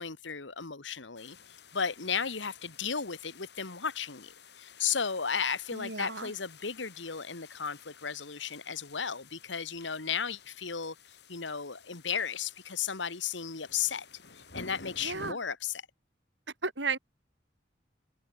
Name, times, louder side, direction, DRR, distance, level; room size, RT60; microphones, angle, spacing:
voice 1, 0.0-1.4 1.7-4.3 4.6-10.9 11.3-14.0 14.5-15.8, left 6 dB, 80° left, 1.7 m, -34 dB
sound 1, 1.1-15.3, left 4 dB, 60° left, 7.8 m, -53 dB
voice 2, 5.7-6.3 15.0-15.4 16.6-17.0, right 4 dB, 75° right, 5.5 m, -34 dB
head